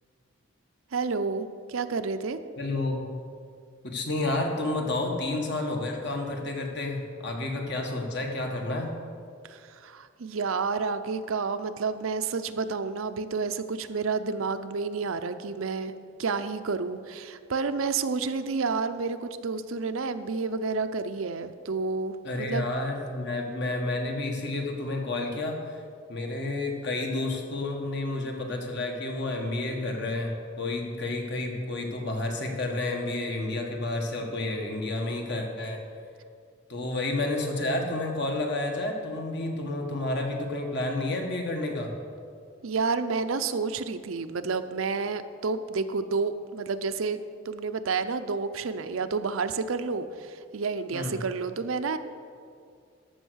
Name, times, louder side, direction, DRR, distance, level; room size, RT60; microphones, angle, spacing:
voice 1, 0.9-2.4 9.5-15.9 16.2-22.7 42.6-47.2 47.5-52.0, right 4 dB, 80° right, 10 dB, 0.6 m, -30 dB
voice 2, 2.6-3.1 3.8-8.9 22.2-25.6 26.1-35.8 36.7-41.9 50.9-51.2, left 2 dB, 55° left, 2 dB, 1.6 m, -30 dB
13.5 x 6.3 x 6.3 m, 2.3 s
head